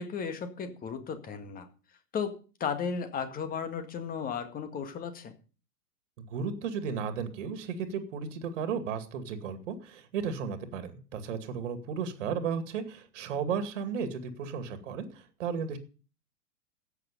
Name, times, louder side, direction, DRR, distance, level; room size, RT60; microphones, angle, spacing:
voice 1, 0.0-1.7 2.1-5.3, left 6 dB, 15° left, 9 dB, 1.9 m, -35 dB
voice 2, 6.2-15.8, right 6 dB, 45° right, 9 dB, 2.3 m, -34 dB
14.0 x 9.2 x 5.4 m, 0.36 s
figure-of-eight pair, 105°, 48 cm